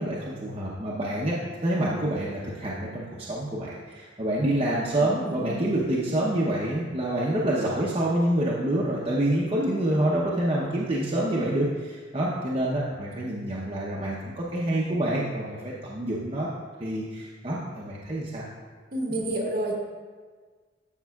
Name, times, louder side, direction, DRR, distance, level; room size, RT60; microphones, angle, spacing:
voice 1, 0.0-16.5 16.8-18.4 19.1-19.2, right 1 dB, 30° right, -6 dB, 0.8 m, -27 dB
voice 2, 4.4-5.7 18.9-19.8, right 1 dB, 50° right, -2 dB, 1.4 m, -31 dB
12.0 x 6.1 x 2.4 m, 1.5 s
head